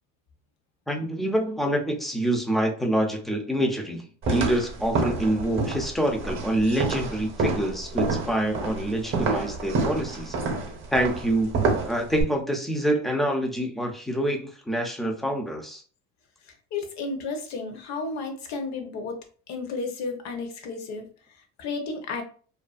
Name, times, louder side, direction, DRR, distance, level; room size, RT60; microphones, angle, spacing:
voice 1, 0.9-10.4 10.9-15.8, right 1 dB, ahead, 2 dB, 0.5 m, -26 dB
sound 1, 4.2-12.2, right 3 dB, 35° right, 0.7 m, -28 dB
voice 2, 16.4-19.2 19.5-22.2, left 4 dB, 55° left, 5 dB, 0.8 m, -33 dB
2.5 x 2.3 x 2.3 m, 0.42 s
supercardioid pair, 95°, 34 cm